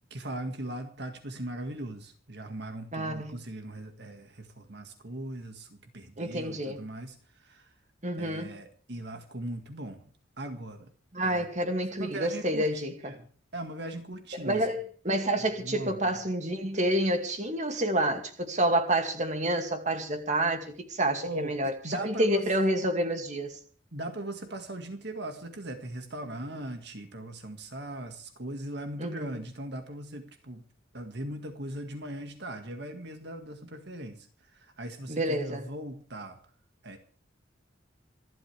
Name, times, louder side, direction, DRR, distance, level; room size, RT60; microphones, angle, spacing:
voice 1, 0.1-7.7 8.2-10.9 11.2-11.5 12.0-13.3 13.5-14.7 15.6-16.2 21.2-22.4 23.9-30.6 30.9-36.4 36.8-37.0, right 1 dB, 60° right, 2.0 m, -39 dB
voice 2, 2.9-3.3 6.2-6.8 8.0-8.5 11.1-13.2 14.4-23.6 29.0-29.3 35.1-35.7, right 1 dB, 40° right, 2.4 m, -28 dB
27.0 x 12.0 x 3.5 m
head